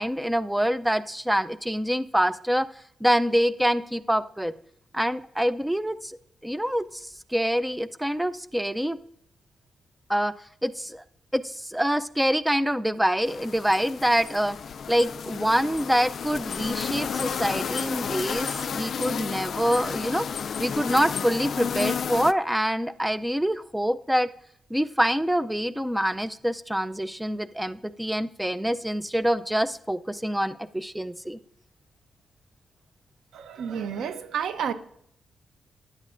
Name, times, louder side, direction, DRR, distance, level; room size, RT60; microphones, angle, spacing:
voice 1, 0.0-2.7 3.0-4.5 4.9-6.2 6.4-9.0 10.1-10.3 10.6-11.0 11.3-14.6 14.9-20.3 20.6-24.3 24.7-31.4, equal, 5° right, 13 dB, 0.4 m, -25 dB
sound 1, 13.3-22.3, left 7 dB, 60° left, 0.3 m, -32 dB
voice 2, 33.3-34.7, right 8 dB, 85° right, 11 dB, 0.8 m, -30 dB
15.0 x 11.0 x 2.5 m, 0.68 s
cardioid pair, 100°, 0 cm